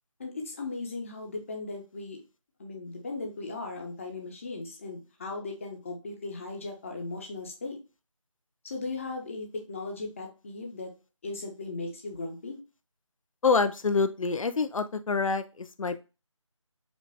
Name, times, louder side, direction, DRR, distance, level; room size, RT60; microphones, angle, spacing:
voice 1, 0.2-2.2 2.6-7.8 8.6-10.9 11.2-12.6, left 3 dB, 25° left, 1 dB, 0.8 m, -37 dB
voice 2, 13.4-16.0, left 4 dB, 80° left, 11 dB, 0.4 m, -26 dB
5.0 x 2.3 x 3.4 m, 0.31 s
figure-of-eight pair, 160°, 17 cm